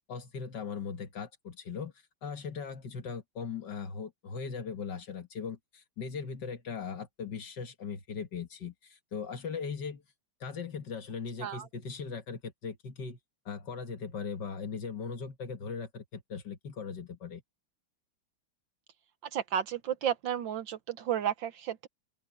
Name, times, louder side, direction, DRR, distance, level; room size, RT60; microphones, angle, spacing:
voice 1, 0.1-1.9 2.2-10.0 10.4-13.2 13.5-17.4, left 5 dB, 55° left, 2.2 m, -39 dB
voice 2, 19.3-21.9, right 10 dB, 65° right, 1.5 m, -32 dB
open air
omnidirectional pair, 2.3 m